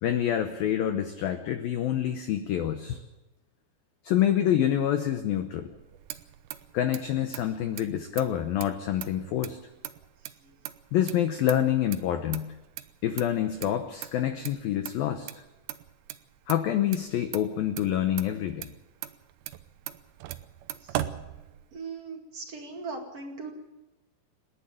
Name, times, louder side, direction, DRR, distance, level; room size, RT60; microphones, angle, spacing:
voice 1, 0.0-3.0 4.0-5.7 6.7-9.6 10.9-12.5 13.0-15.4 16.5-18.7, left 10 dB, 90° left, 8 dB, 2.0 m, -27 dB
Motor vehicle (road), 5.7-21.9, right 13 dB, 85° right, 3.5 m, -41 dB
voice 2, 21.7-23.5, right 4 dB, 40° right, 2 dB, 2.5 m, -39 dB
29.0 x 10.0 x 8.9 m, 1.0 s
omnidirectional pair, 5.6 m